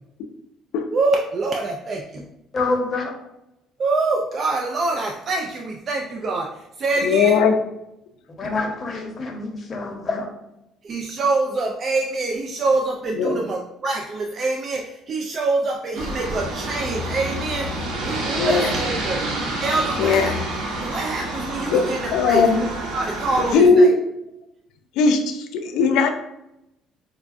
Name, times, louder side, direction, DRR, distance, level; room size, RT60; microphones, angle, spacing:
voice 1, 0.9-2.2 3.8-7.4 10.8-19.2 19.6-20.4 20.8-22.7 22.9-23.9, right 3 dB, 40° right, 1 dB, 0.4 m, -25 dB
voice 2, 2.5-3.1 8.4-10.3, left 3 dB, 35° left, 1 dB, 0.9 m, -26 dB
voice 3, 7.0-7.6 13.1-13.4 18.4-18.7 20.0-20.3 21.7-22.7 23.5-24.0 25.0-26.1, left 4 dB, 80° left, 6 dB, 0.4 m, -18 dB
Aircraft, 15.9-23.5, right 1 dB, 85° right, 0.8 m, -28 dB
4.9 x 2.2 x 2.5 m, 0.87 s
cardioid pair, 110°, 0 cm